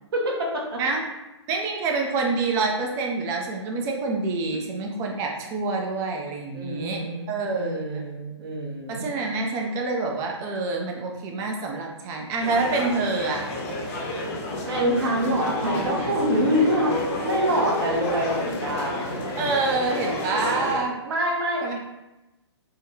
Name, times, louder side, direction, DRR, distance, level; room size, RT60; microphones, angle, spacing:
voice 1, 0.1-0.8 6.5-9.1 14.7-17.0 17.2-19.2 21.0-21.6, equal, 55° right, -1 dB, 0.8 m, -25 dB
voice 2, 1.5-8.0 8.9-13.5 19.4-21.0 21.6-21.8, right 3 dB, 20° right, 1 dB, 0.4 m, -27 dB
sound 1, 12.4-20.8, left 1 dB, 30° left, 0.7 m, -30 dB
3.5 x 2.2 x 3.0 m, 1.0 s
figure-of-eight pair, 125°, 15 cm